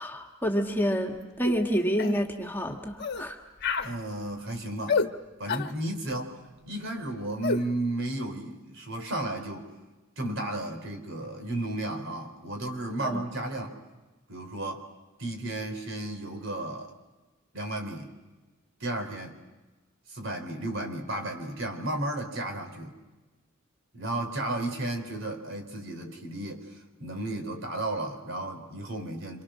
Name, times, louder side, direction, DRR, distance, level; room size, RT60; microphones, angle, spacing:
voice 1, 0.0-3.4 13.0-13.2, equal, 10° left, 2 dB, 2.0 m, -28 dB
sound 1, 1.4-1.6 2.0-2.2 3.0-3.3 3.6-3.9 4.9-5.1 5.5-5.7 7.4-7.6, left 4 dB, 55° left, 1.2 m, -28 dB
voice 2, 3.8-5.0 5.4-9.7 10.2-13.8 14.3-14.8 15.2-16.9 17.5-18.1 18.8-19.4 20.1-22.9 23.9-29.4, right 1 dB, 65° right, 5 dB, 4.3 m, -33 dB
28.0 x 27.0 x 6.4 m, 1.2 s
head